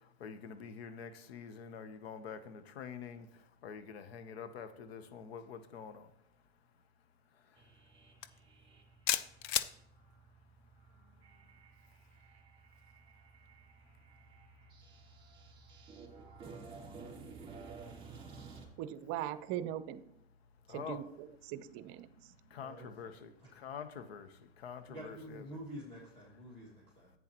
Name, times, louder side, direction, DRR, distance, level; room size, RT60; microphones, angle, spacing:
voice 1, 0.2-3.3 3.6-6.1 20.7-21.0 22.5-24.3 24.6-25.6, left 7 dB, 75° left, 10 dB, 1.0 m, -46 dB
sound 1, 7.6-18.7, right 4 dB, 15° right, 3.4 m, -54 dB
sound 2, 8.2-8.4 9.1-9.7, left 12 dB, 50° left, 0.6 m, -31 dB
voice 2, 18.8-20.0 20.7-21.0 21.5-22.3, right 12 dB, 40° right, 14 dB, 0.7 m, -40 dB
voice 3, 24.9-27.1, right 1 dB, 15° left, -4 dB, 2.1 m, -48 dB
10.5 x 8.8 x 3.0 m, 0.78 s
hypercardioid pair, 115°, 31 cm